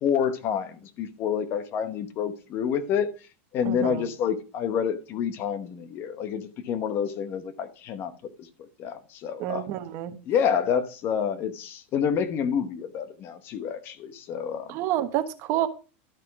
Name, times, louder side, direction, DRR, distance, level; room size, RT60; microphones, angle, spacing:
voice 1, 0.0-3.1 3.5-8.1 8.8-9.7 10.3-14.8, left 7 dB, 35° left, 1.0 m, -28 dB
voice 2, 3.6-4.0 9.4-10.2 14.7-15.7, right 13 dB, 45° right, 1.2 m, -28 dB
12.0 x 5.9 x 4.7 m
supercardioid pair, 155°, 6 cm